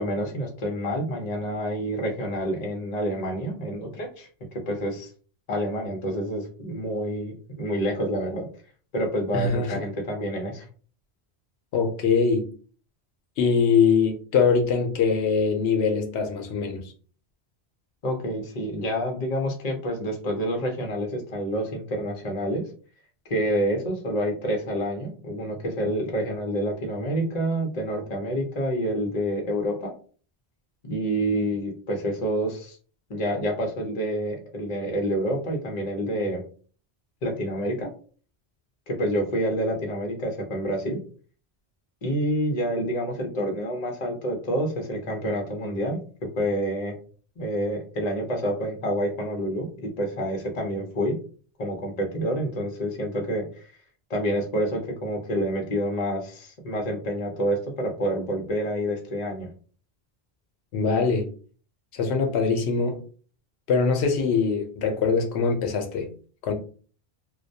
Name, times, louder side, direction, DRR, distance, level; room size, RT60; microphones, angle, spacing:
voice 1, 0.0-4.3 4.7-5.1 5.5-8.5 8.9-10.7 18.0-22.6 23.3-29.9 30.8-32.8 33.1-36.4 37.2-37.9 38.9-41.0 42.0-46.0 46.4-46.9 47.4-51.1 51.6-53.7 54.1-59.5, equal, 45° left, 0.7 m, -28 dB
voice 2, 9.3-9.7 11.7-12.5 13.4-16.9 60.7-61.3 61.9-62.9 63.7-66.1 66.4-66.5, left 5 dB, 90° left, 0.9 m, -22 dB
2.2 x 2.1 x 2.6 m
omnidirectional pair, 1.1 m